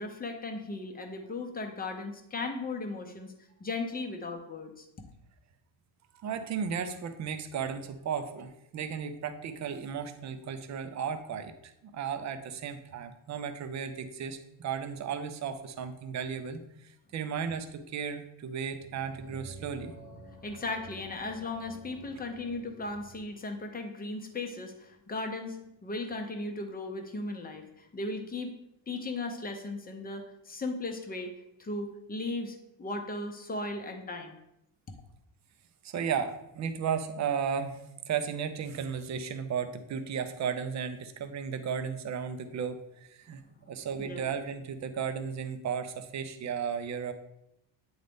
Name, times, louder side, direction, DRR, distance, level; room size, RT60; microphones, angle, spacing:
voice 1, 0.0-3.3 3.6-4.9 20.4-28.5 28.9-31.3 31.6-34.4 44.0-44.3, left 2 dB, 20° left, 4 dB, 0.6 m, -37 dB
voice 2, 6.2-16.6 17.1-19.9 35.8-37.8 38.1-43.4 43.7-47.1, right 7 dB, 35° right, 9 dB, 0.5 m, -34 dB
sound 1, 18.8-23.3, right 2 dB, ahead, 1.3 m, -50 dB
8.9 x 4.0 x 3.5 m, 0.82 s
cardioid pair, 160°, 50 cm